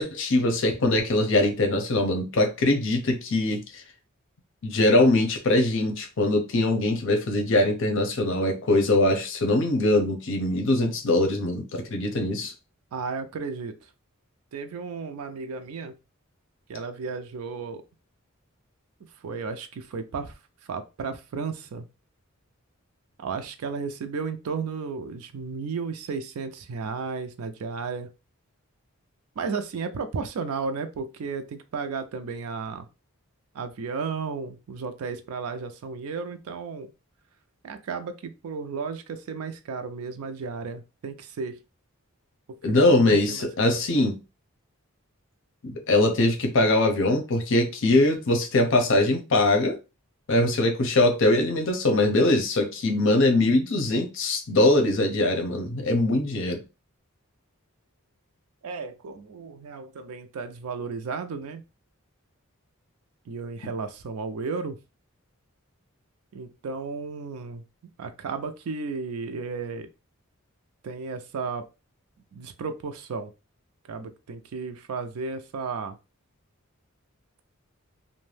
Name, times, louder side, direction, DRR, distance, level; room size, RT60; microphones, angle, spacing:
voice 1, 0.0-3.6 4.6-12.5 42.6-44.2 45.6-49.8 50.3-56.6, left 2 dB, 60° left, 0.6 m, -22 dB
voice 2, 12.9-13.8 14.5-15.9 16.7-17.8 19.2-20.3 20.7-21.9 23.2-28.1 29.4-32.9 33.5-36.9 37.6-41.6 42.9-43.8 58.6-61.6 63.3-64.8 66.3-67.6 68.0-69.9 70.8-71.6 72.3-73.3 73.9-76.0, right 4 dB, 85° right, 0.4 m, -33 dB
2.5 x 2.1 x 3.2 m
head